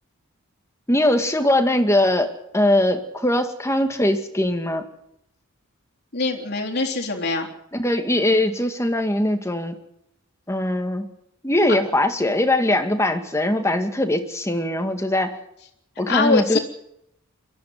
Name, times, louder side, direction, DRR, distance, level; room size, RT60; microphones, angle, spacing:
voice 1, 0.9-4.8 7.7-9.7 10.5-11.1 11.4-15.4 16.0-16.6, left 1 dB, 15° left, 6 dB, 2.1 m, -21 dB
voice 2, 6.1-7.5 11.7-11.8 16.1-16.6, left 3 dB, 50° left, 1 dB, 3.7 m, -23 dB
22.5 x 14.0 x 9.5 m, 0.77 s
head